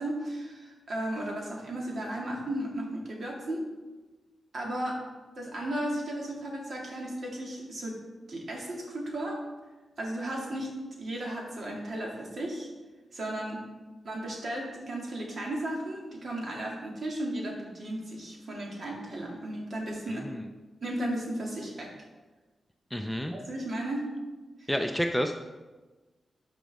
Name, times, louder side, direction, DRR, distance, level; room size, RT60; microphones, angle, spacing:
voice 1, 0.0-3.6 4.5-5.0 5.4-8.0 8.3-9.4 10.0-12.7 13.1-13.6 14.0-20.3 20.8-21.9 23.3-24.1 24.6-24.7, right 1 dB, 55° right, -1 dB, 2.1 m, -35 dB
voice 2, 20.1-20.4 22.9-23.3 24.7-25.3, equal, ahead, 4 dB, 0.4 m, -30 dB
12.5 x 5.1 x 3.5 m, 1.2 s
wide cardioid pair, 105°, 0 cm